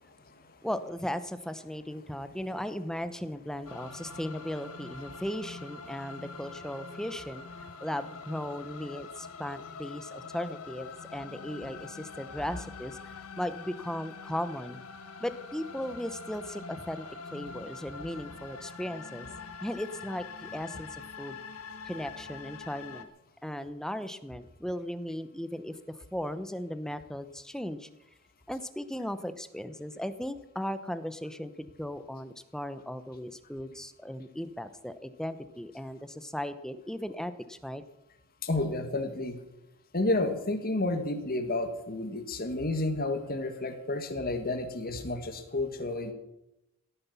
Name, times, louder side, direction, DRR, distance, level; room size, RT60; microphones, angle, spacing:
voice 1, 0.6-7.4 7.8-14.8 15.2-17.1 17.3-19.3 19.6-21.4 21.8-23.1 23.4-27.9 28.5-37.8, equal, 5° left, 11 dB, 0.8 m, -37 dB
sound 1, 3.7-23.0, left 4 dB, 80° left, 1.5 m, -45 dB
voice 2, 38.4-39.4 39.9-46.1, left 2 dB, 40° left, 6 dB, 2.0 m, -31 dB
17.0 x 9.8 x 7.0 m, 0.86 s
head